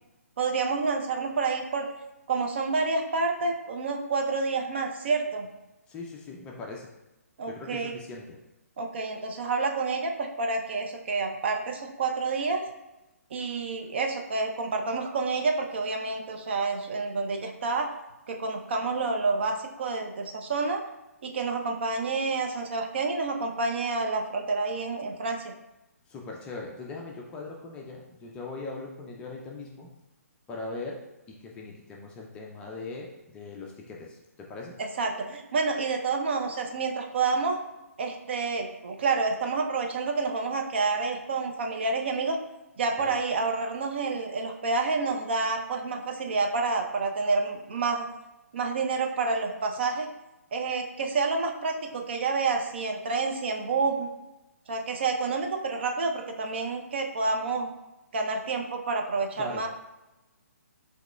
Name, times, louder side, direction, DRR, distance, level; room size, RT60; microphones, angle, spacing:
voice 1, 0.4-1.9 2.3-5.5 7.4-8.0 8.8-12.6 13.3-17.9 18.3-20.8 21.2-25.4 34.8-37.6 38.0-42.4 42.8-48.1 48.5-50.1 50.5-54.1 54.7-57.7 58.1-59.7, right 4 dB, 45° right, 3 dB, 0.5 m, -28 dB
voice 2, 5.9-6.9 7.5-8.4 26.1-29.9 30.5-31.0 31.3-34.8 43.0-43.1 59.4-59.7, left 3 dB, 10° left, -1 dB, 0.4 m, -40 dB
5.7 x 2.9 x 2.2 m, 0.97 s
figure-of-eight pair, 135°, 8 cm